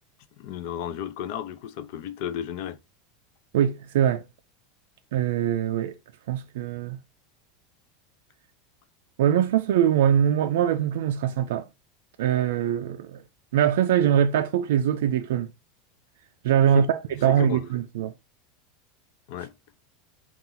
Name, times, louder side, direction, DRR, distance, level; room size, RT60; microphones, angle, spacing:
voice 1, 0.4-2.8 16.7-16.9 17.3-17.6 19.3-19.5, left 10 dB, 50° left, 0.4 m, -33 dB
voice 2, 3.5-4.2 5.1-6.0 6.3-7.0 9.2-11.6 12.2-13.2 13.5-15.5 16.4-18.1, right 10 dB, 85° right, 0.3 m, -22 dB
4.1 x 2.4 x 3.7 m
supercardioid pair, 170°, 0 cm